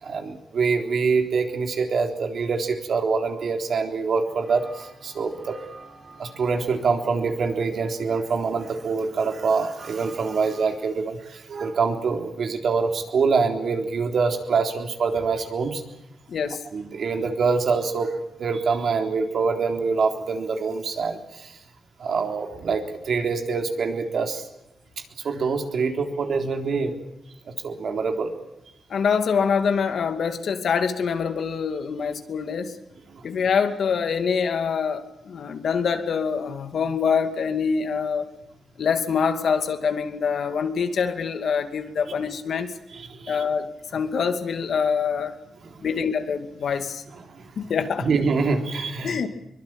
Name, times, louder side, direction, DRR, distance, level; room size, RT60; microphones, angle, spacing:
voice 1, 0.0-5.6 6.2-15.8 16.7-21.6 22.0-24.5 25.2-27.0 27.5-28.3 33.1-33.3 42.9-43.4 45.6-45.9 47.3-47.6 48.0-49.2, right 4 dB, 65° right, 5 dB, 3.7 m, -25 dB
sound 1, 4.2-10.8, right 3 dB, 30° right, 6.9 m, -49 dB
voice 2, 16.3-16.6 28.9-32.8 33.2-38.3 38.8-42.7 43.3-45.3 45.8-47.0 47.6-48.1 49.0-49.3, left 6 dB, 70° left, 8 dB, 2.5 m, -25 dB
23.5 x 23.0 x 9.0 m, 0.84 s
wide cardioid pair, 120°, 0 cm